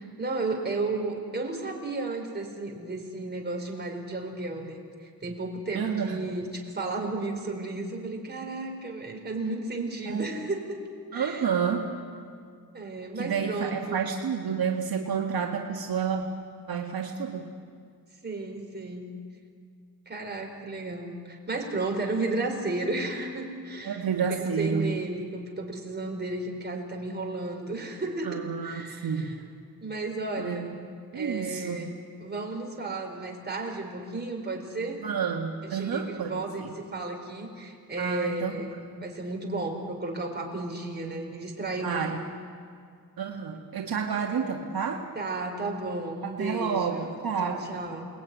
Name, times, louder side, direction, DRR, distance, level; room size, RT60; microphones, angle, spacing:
voice 1, 0.0-10.8 11.1-11.4 12.7-14.1 18.2-19.1 20.1-24.0 24.3-29.4 29.8-30.7 31.1-31.9 32.2-35.0 35.6-42.0 45.1-48.1, right 2 dB, 25° right, 1 dB, 4.5 m, -33 dB
voice 2, 5.7-6.3 10.1-10.3 11.1-11.9 13.2-16.3 16.7-17.5 23.8-24.9 28.2-29.4 30.4-30.8 31.1-31.9 35.0-36.7 38.0-38.5 41.8-42.2 43.2-45.1 46.2-47.7, right 6 dB, 70° right, 0 dB, 2.1 m, -30 dB
29.5 x 21.0 x 9.6 m, 2.2 s
wide cardioid pair, 150°, 38 cm